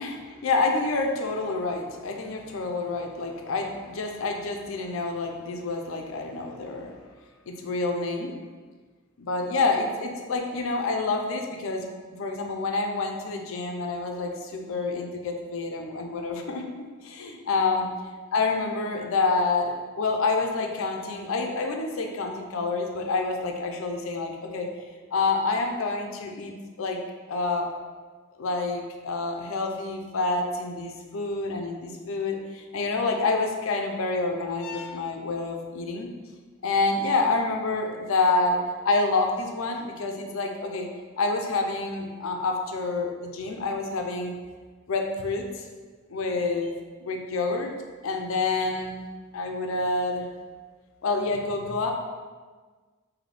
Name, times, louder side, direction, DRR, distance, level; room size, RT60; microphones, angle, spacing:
voice 1, 0.0-6.9 7.5-8.3 9.2-16.6 17.0-17.9 18.3-24.7 25.1-27.0 27.3-27.7 28.4-36.1 36.6-40.9 41.2-44.3 44.9-45.6 46.1-46.7 47.0-47.7 48.0-49.0 49.3-50.2 51.0-51.9, left 3 dB, 65° left, 3 dB, 0.5 m, -28 dB
4.0 x 2.7 x 3.3 m, 1.4 s
head